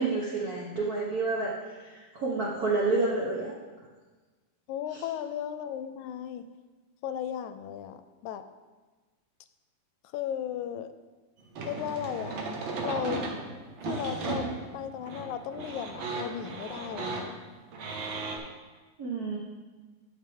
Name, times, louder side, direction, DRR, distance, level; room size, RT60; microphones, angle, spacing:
voice 1, 0.0-3.5 4.9-5.1 19.0-19.4, right 3 dB, 75° right, -4 dB, 0.8 m, -29 dB
voice 2, 4.7-6.5 7.0-8.4 10.1-10.9 11.6-12.4 12.8-13.3 13.9-14.5 14.7-17.4, left 9 dB, 80° left, 11 dB, 1.9 m, -35 dB
sound 1, 11.6-18.4, right 3 dB, 55° right, 1.4 m, -35 dB
13.0 x 6.4 x 3.6 m, 1.3 s
omnidirectional pair, 3.5 m